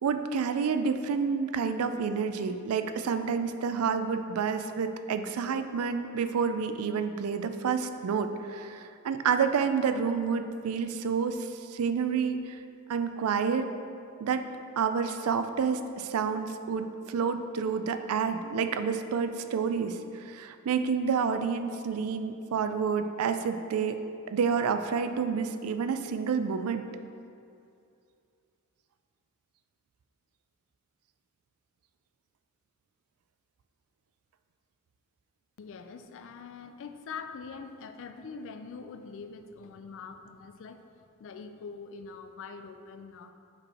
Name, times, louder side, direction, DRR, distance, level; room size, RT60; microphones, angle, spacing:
voice 1, 0.0-12.6 12.9-13.7 14.2-14.5 14.8-24.0 24.3-26.9, right 6 dB, 75° right, 9 dB, 0.4 m, -29 dB
voice 2, 35.6-40.8 41.2-43.3, left 5 dB, 60° left, 8 dB, 0.4 m, -43 dB
5.2 x 4.6 x 4.2 m, 2.5 s
head